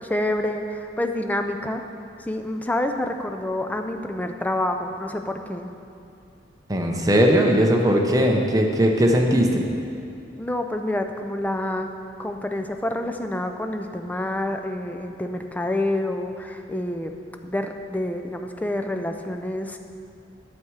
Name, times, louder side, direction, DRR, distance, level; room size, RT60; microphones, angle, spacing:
voice 1, 0.0-1.8 2.2-5.7 10.4-11.9 12.2-19.8, left 1 dB, 10° left, 5 dB, 0.4 m, -28 dB
voice 2, 6.7-9.7, equal, 20° right, 1 dB, 0.8 m, -19 dB
9.4 x 7.1 x 4.8 m, 2.5 s
head